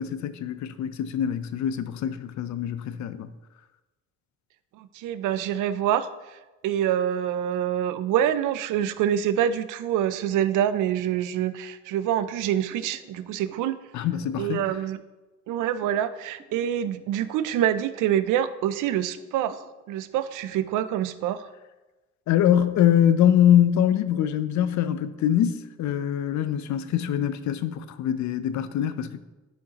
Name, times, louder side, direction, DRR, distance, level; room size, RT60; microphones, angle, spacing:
voice 1, 0.0-3.3 13.9-14.6 22.3-29.2, left 10 dB, 70° left, 0.5 m, -23 dB
voice 2, 4.8-6.4 6.6-13.8 14.4-15.0 15.5-21.5, right 10 dB, 90° right, 0.5 m, -26 dB
sound 1, 12.7-13.7 14.1-14.7 15.5-16.0 16.4-17.4 17.8-18.3 19.2-19.7, right 3 dB, 35° right, 1.7 m, -51 dB
10.0 x 5.2 x 2.9 m
cardioid pair, 90°, 30 cm